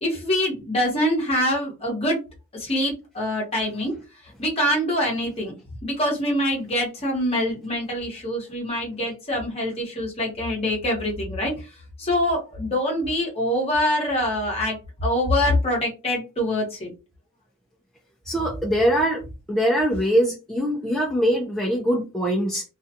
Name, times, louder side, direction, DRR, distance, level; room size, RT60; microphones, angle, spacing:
voice 1, 0.0-2.2 2.5-3.9 4.4-5.5 5.8-11.5 12.0-14.8 15.0-16.9, left 1 dB, 30° left, -1 dB, 1.0 m, -24 dB
voice 2, 18.3-19.2 19.5-22.6, equal, ahead, -4 dB, 0.5 m, -22 dB
2.5 x 2.3 x 2.6 m, 0.29 s
head